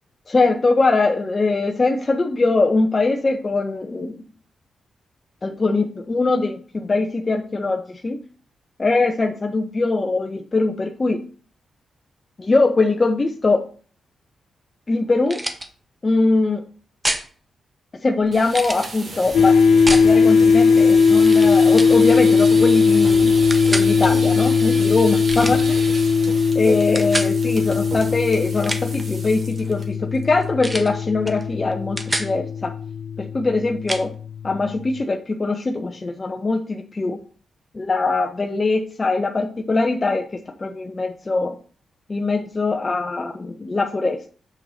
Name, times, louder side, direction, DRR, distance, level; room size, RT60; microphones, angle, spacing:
voice 1, 0.3-4.2 5.4-8.2 8.8-11.2 12.4-13.7 14.9-15.4 16.0-16.6 18.0-19.6 19.9-23.4 23.7-25.9 26.5-32.7 33.2-34.1 34.4-37.2 37.7-41.5 42.1-44.3, left 3 dB, 40° left, 3 dB, 1.0 m, -22 dB
sound 1, 15.3-15.7 17.0-17.3 18.5-18.9 19.9-20.1 21.2-21.5 21.8-22.0 23.5-23.9 25.3-25.6 26.9-27.3 28.5-29.0 30.6-30.9 31.3-31.4 31.7-32.3 33.9-34.0, right 1 dB, 20° right, 1.5 m, -27 dB
sound 2, 18.2-29.8 30.2-30.4 30.8-30.9 31.2-31.6, right 2 dB, 55° right, 2.6 m, -34 dB
sound 3, 19.3-34.6, left 5 dB, 75° left, 0.5 m, -18 dB
6.5 x 5.8 x 4.2 m, 0.42 s
supercardioid pair, 45°, 0 cm